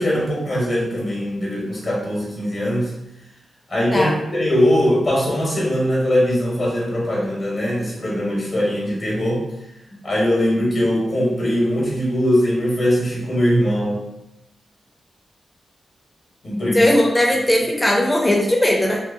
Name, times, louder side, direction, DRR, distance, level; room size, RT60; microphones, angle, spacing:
voice 1, 0.0-2.9 3.7-9.4 10.0-14.0 16.4-16.9 17.3-17.4, equal, 50° left, -4 dB, 0.8 m, -21 dB
voice 2, 16.7-19.0, left 1 dB, 10° left, 0 dB, 0.5 m, -18 dB
2.7 x 2.1 x 2.4 m, 0.87 s
cardioid pair, 85°, 0 cm